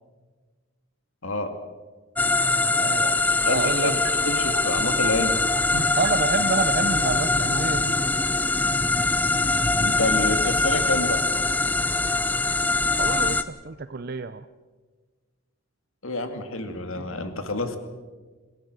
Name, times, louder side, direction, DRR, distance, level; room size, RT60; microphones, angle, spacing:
voice 1, 1.2-1.5 3.4-5.4 5.7-5.9 9.7-11.2 16.0-17.8, left 2 dB, 70° left, 7 dB, 2.2 m, -28 dB
sound 1, 2.2-13.4, left 2 dB, 10° left, 0.5 m, -23 dB
voice 2, 2.8-3.1 3.5-4.0 6.0-8.0 13.0-14.5 17.0-17.1, right 4 dB, 45° right, 11 dB, 0.5 m, -28 dB
sound 2, 3.0-3.1 3.5-3.6 4.0-4.1 4.5-4.6 5.0-5.1 5.5-5.6 6.0-6.1 6.5-6.6 7.0-7.1 7.5-7.6, right 6 dB, 80° right, 0.7 m, -35 dB
26.5 x 16.0 x 6.5 m, 1.4 s
head